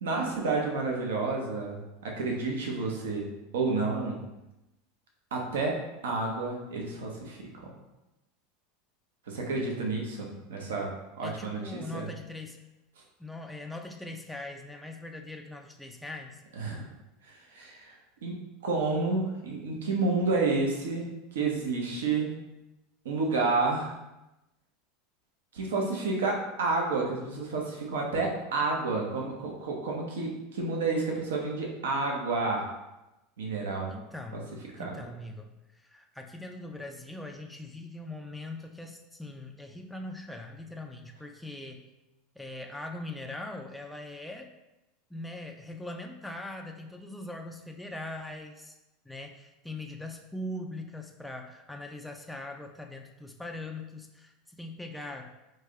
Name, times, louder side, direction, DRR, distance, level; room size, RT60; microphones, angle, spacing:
voice 1, 0.0-3.3 3.5-4.2 5.3-7.8 9.3-10.9 11.2-12.1 16.6-16.9 17.2-18.0 18.2-18.4 18.6-22.3 23.0-23.9 25.5-32.7 33.4-33.9 34.3-34.4 34.8-34.9, right 3 dB, 75° right, -1 dB, 0.7 m, -30 dB
voice 2, 11.2-12.6 13.2-16.4 17.6-17.7 33.9-34.4 34.8-41.9 42.4-44.5 45.1-48.8 49.1-55.3, left 2 dB, 5° left, 2 dB, 0.4 m, -41 dB
3.2 x 2.7 x 3.4 m, 0.97 s
hypercardioid pair, 85°, 0 cm